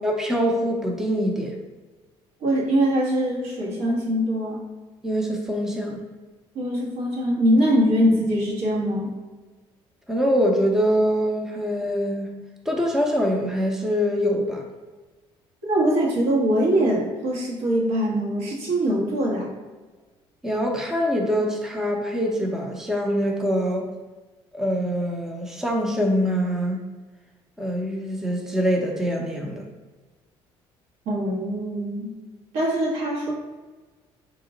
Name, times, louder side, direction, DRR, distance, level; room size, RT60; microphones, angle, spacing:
voice 1, 0.0-1.5 5.0-6.0 10.1-12.3 12.7-14.6 20.4-23.9 24.5-26.8 27.6-29.6, equal, 5° right, 1 dB, 0.5 m, -24 dB
voice 2, 2.4-4.6 6.5-9.1 15.6-19.5 31.0-32.1 32.5-33.3, right 1 dB, 90° right, -3 dB, 1.5 m, -22 dB
4.9 x 2.9 x 3.8 m, 1.3 s
cardioid pair, 150°, 10 cm